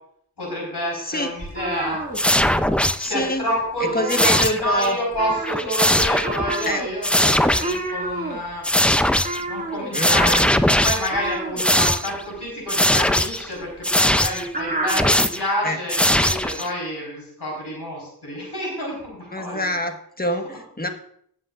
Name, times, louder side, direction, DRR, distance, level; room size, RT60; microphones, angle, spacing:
voice 1, 0.4-2.0 3.0-8.6 9.5-19.7, equal, 80° left, -2 dB, 4.3 m, -28 dB
voice 2, 0.9-1.3 3.0-3.5 3.8-5.0 6.7-6.8 9.9-10.5 15.6-15.8 19.3-20.9, left 1 dB, 25° left, 5 dB, 1.4 m, -26 dB
sound 1, 1.4-2.9 3.2-3.4 3.7-4.8 5.1-15.2, right 2 dB, 20° right, 2.5 m, -31 dB
sound 2, 2.1-3.1 4.1-4.9 5.3-6.7 7.0-7.8 8.6-9.4 9.9-11.2 11.6-12.2 12.7-13.5 13.8-14.5 14.9-15.5 15.9-16.7, left 1 dB, 5° left, 0.5 m, -20 dB
18.0 x 7.6 x 2.5 m, 0.65 s
wide cardioid pair, 50°, 39 cm